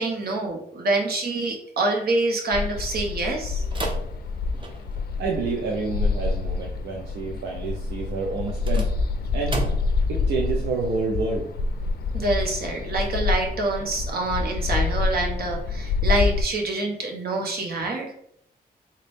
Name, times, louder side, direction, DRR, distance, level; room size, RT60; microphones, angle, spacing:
voice 1, 0.0-3.6 12.1-18.1, right 2 dB, 65° right, 1 dB, 0.9 m, -26 dB
sound 1, 2.5-16.4, left 4 dB, 65° left, 0.4 m, -27 dB
sound 2, 3.7-5.1 8.4-10.1, right 1 dB, 30° right, 0.8 m, -32 dB
voice 2, 5.2-8.9 9.3-9.7 10.1-11.5, right 4 dB, 85° right, -1 dB, 0.6 m, -28 dB
3.7 x 2.2 x 3.4 m, 0.70 s
cardioid pair, 60°, 17 cm